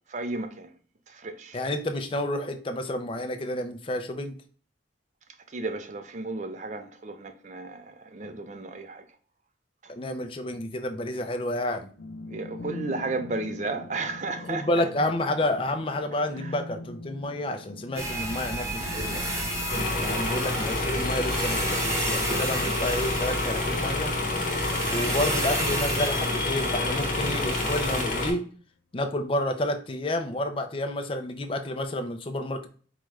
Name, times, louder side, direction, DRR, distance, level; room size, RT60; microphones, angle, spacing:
voice 1, 0.1-0.7 1.1-1.6 5.5-9.0 9.8-9.9 12.3-14.7 16.4-16.6, right 3 dB, 40° right, 0.4 m, -34 dB
voice 2, 1.5-4.3 8.2-8.3 9.9-11.9 14.4-19.3 20.0-24.2 24.9-28.5 28.9-32.7, left 1 dB, 30° left, 0.4 m, -30 dB
sound 1, 12.0-28.5, left 3 dB, 80° left, 0.5 m, -45 dB
sound 2, 17.9-28.0, right 1 dB, 15° right, 0.9 m, -32 dB
sound 3, 19.7-28.3, left 2 dB, 45° left, 1.1 m, -28 dB
4.8 x 2.3 x 3.1 m
head